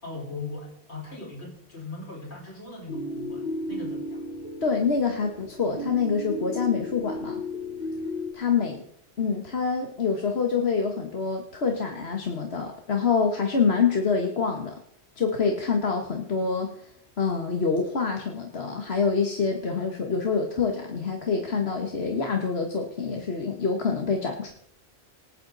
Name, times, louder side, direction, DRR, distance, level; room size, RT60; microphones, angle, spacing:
voice 1, 0.0-4.2, left 3 dB, 90° left, -1 dB, 5.8 m, -39 dB
sound 1, 2.9-8.3, left 1 dB, 25° right, 4.2 m, -34 dB
voice 2, 4.6-7.4 8.3-8.8 9.2-14.8 15.2-16.9 17.2-24.5, left 5 dB, 75° left, 3 dB, 1.8 m, -26 dB
26.0 x 9.9 x 4.1 m, 0.70 s
omnidirectional pair, 1.1 m